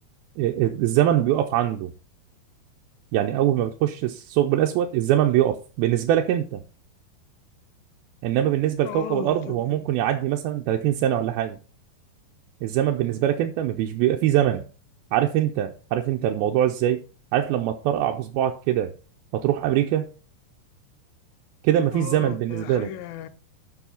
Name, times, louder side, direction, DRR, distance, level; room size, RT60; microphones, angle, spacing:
voice 1, 0.4-1.9 3.1-6.6 8.2-11.6 12.6-14.6 15.1-17.0 17.3-18.9 19.3-20.1 21.6-22.9, right 12 dB, 90° right, 2.6 m, -23 dB
voice 2, 8.8-9.9 21.9-23.3, left 11 dB, 80° left, 2.3 m, -36 dB
7.3 x 6.2 x 5.2 m
omnidirectional pair, 4.3 m